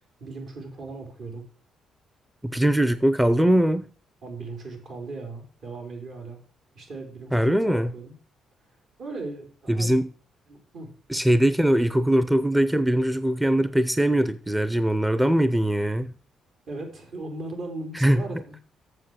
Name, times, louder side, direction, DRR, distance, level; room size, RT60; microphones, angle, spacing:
voice 1, 0.2-1.4 4.2-6.4 6.7-8.1 9.0-10.0 10.5-10.9 16.7-18.6, right 3 dB, 65° right, 4.1 m, -38 dB
voice 2, 2.4-3.9 7.3-7.9 9.7-10.1 11.1-16.1 17.9-18.2, right 1 dB, 5° right, 0.6 m, -21 dB
7.7 x 7.2 x 7.4 m
cardioid pair, 90°, 0 cm